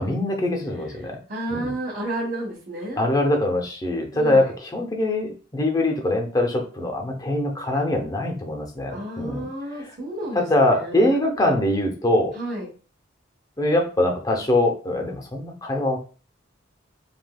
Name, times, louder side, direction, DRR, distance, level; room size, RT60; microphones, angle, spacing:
voice 1, 0.0-1.2 1.5-1.7 3.0-9.5 10.3-12.3 13.6-16.0, left 1 dB, 20° left, 3 dB, 0.6 m, -23 dB
voice 2, 0.7-3.0 4.1-4.5 8.9-11.2 12.3-12.7, right 1 dB, 50° right, -7 dB, 1.0 m, -32 dB
3.3 x 2.8 x 2.2 m, 0.38 s
head